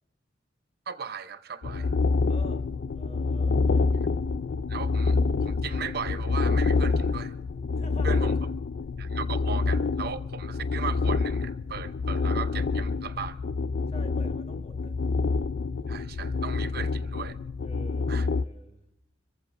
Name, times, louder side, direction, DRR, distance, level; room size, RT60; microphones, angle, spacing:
voice 1, 0.9-2.0 4.7-7.4 8.0-8.3 9.0-13.4 15.9-17.4 18.1-18.3, right 6 dB, 55° right, 0.7 m, -37 dB
sound 1, 1.6-18.4, left 4 dB, 60° left, 0.4 m, -27 dB
voice 2, 2.2-4.0 7.7-8.5 13.9-14.9 17.6-18.8, left 1 dB, 35° left, 1.6 m, -47 dB
26.0 x 15.0 x 2.6 m
head